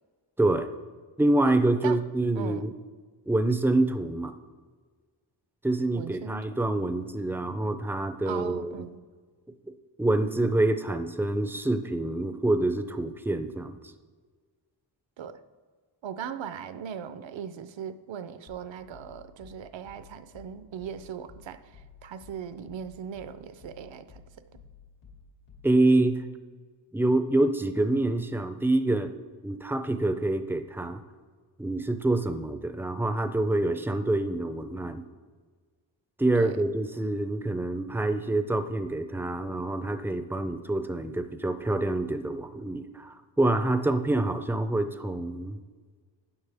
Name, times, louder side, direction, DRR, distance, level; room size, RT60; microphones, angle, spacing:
voice 1, 0.4-0.7 1.2-2.7 3.3-4.3 5.6-8.8 10.0-13.8 25.6-26.2 26.9-29.1 29.4-31.0 31.6-35.0 36.2-45.6, right 2 dB, 5° right, 9 dB, 0.4 m, -26 dB
voice 2, 1.4-2.0 2.3-2.7 5.9-6.4 8.3-9.0 15.2-15.4 16.0-24.2 24.5-24.6 36.4-36.6, right 8 dB, 75° right, 12 dB, 0.7 m, -39 dB
sound 1, 18.5-26.0, left 5 dB, 85° left, 2.5 m, -53 dB
12.5 x 9.5 x 3.4 m, 1.5 s
wide cardioid pair, 155°, 45 cm